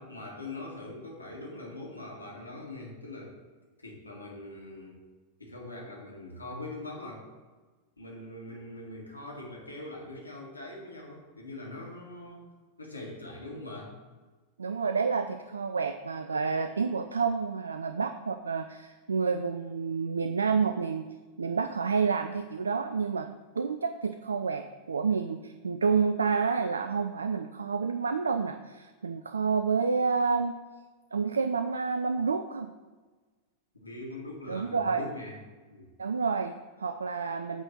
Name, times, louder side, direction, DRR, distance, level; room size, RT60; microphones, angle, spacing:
voice 1, 0.0-3.4 3.8-5.0 5.4-7.3 8.0-12.4 12.8-13.9 33.8-35.4 35.7-35.9, left 2 dB, 80° left, -2 dB, 2.1 m, -42 dB
voice 2, 14.6-21.1 21.4-23.3 23.6-30.5 31.1-32.7 34.5-35.1 36.0-37.6, right 5 dB, 75° right, 8 dB, 0.3 m, -29 dB
8.9 x 3.9 x 6.4 m, 1.3 s
figure-of-eight pair, 90°, 0 cm